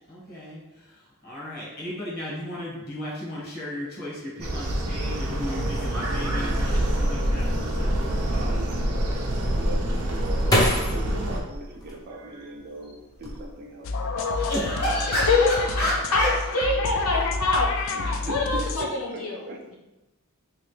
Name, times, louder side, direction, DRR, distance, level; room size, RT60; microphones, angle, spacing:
voice 1, 0.1-8.0 14.3-16.6, equal, 45° left, -5 dB, 1.3 m, -32 dB
sound 1, 4.4-11.4, right 1 dB, 85° right, 0.6 m, -26 dB
voice 2, 8.2-8.9 9.5-13.9 14.6-15.2 17.9-19.7, right 2 dB, 45° right, -1 dB, 0.4 m, -39 dB
sound 2, 9.5-12.6 13.1-13.9 14.2-14.6, left 1 dB, 15° left, 0.6 m, -27 dB
sound 3, 13.8-18.8, left 3 dB, 60° left, 0.3 m, -28 dB
voice 3, 16.1-17.7 18.2-19.4, left 3 dB, 75° left, -2 dB, 0.9 m, -24 dB
3.2 x 3.0 x 3.1 m, 1.0 s
head